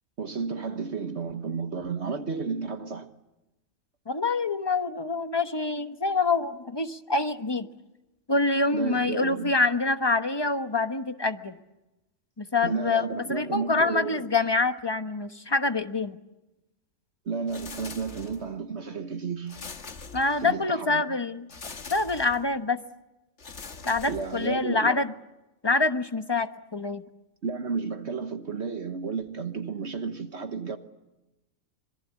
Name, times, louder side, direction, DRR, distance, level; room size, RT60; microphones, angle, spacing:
voice 1, 0.2-3.1 8.6-9.6 12.6-14.3 17.2-19.6 20.4-21.0 24.1-25.0 27.4-30.8, right 5 dB, 55° right, 1.5 m, -32 dB
voice 2, 4.1-7.7 8.3-11.6 12.4-16.2 20.1-21.5 21.9-22.8 23.8-25.1 25.6-27.0, left 3 dB, 20° left, 1.0 m, -26 dB
sound 1, 17.5-18.6 19.5-20.7 21.5-22.5 23.4-24.7, left 4 dB, 55° left, 1.9 m, -43 dB
26.0 x 22.5 x 8.3 m
omnidirectional pair, 1.4 m